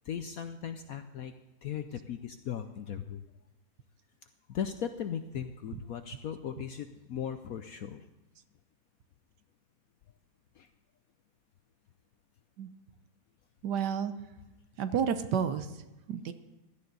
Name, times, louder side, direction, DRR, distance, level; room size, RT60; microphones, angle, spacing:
voice 1, 0.0-1.3 1.6-3.3 4.5-8.1 10.5-10.7, left 8 dB, 65° left, 9 dB, 0.9 m, -38 dB
voice 2, 13.6-14.1 14.8-16.3, right 7 dB, 70° right, 10 dB, 1.3 m, -31 dB
16.5 x 12.0 x 4.0 m, 1.0 s
omnidirectional pair, 2.1 m